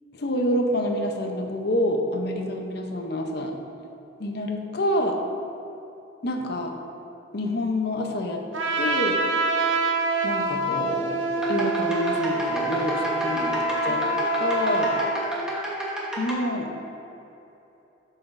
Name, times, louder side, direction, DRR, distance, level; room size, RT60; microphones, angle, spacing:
voice 1, 0.1-3.5 4.2-5.2 6.2-6.8 7.3-8.4 8.8-9.2 10.2-14.1 14.4-15.0 16.2-16.7, left 1 dB, 55° left, 3 dB, 0.7 m, -27 dB
Trumpet, 8.5-15.2, right 2 dB, 80° right, 0.6 m, -26 dB
sound 1, 11.4-16.3, right 1 dB, 5° right, 1.0 m, -31 dB
10.5 x 5.9 x 2.6 m, 2.9 s
head